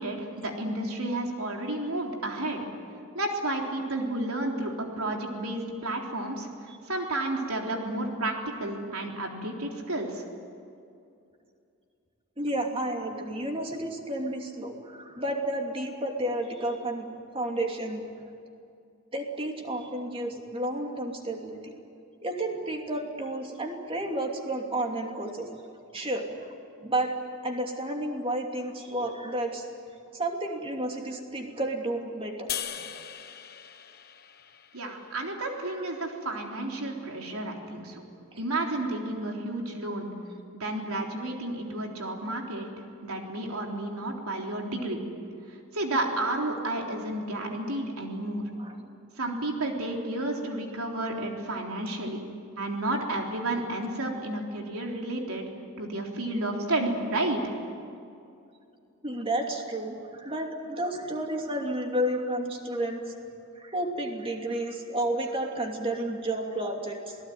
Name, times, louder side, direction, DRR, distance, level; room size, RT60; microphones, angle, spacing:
voice 1, 0.0-2.6 3.1-6.5 6.9-10.2 34.7-38.0 38.4-40.1 40.5-42.7 43.0-45.0 45.7-48.4 49.2-52.2 52.6-55.5 55.8-57.5, right 2 dB, 85° right, 1 dB, 3.8 m, -31 dB
voice 2, 12.4-17.1 17.3-18.0 19.1-21.7 22.2-25.5 25.9-26.3 26.8-27.1 27.4-29.6 30.1-32.5 32.8-32.9 38.3-38.4 48.6-48.9 59.0-63.0 63.6-67.2, right 1 dB, 25° right, 2 dB, 2.8 m, -31 dB
sound 1, 32.5-35.8, left 9 dB, 45° left, 1.2 m, -39 dB
27.5 x 18.5 x 9.4 m, 2.5 s
head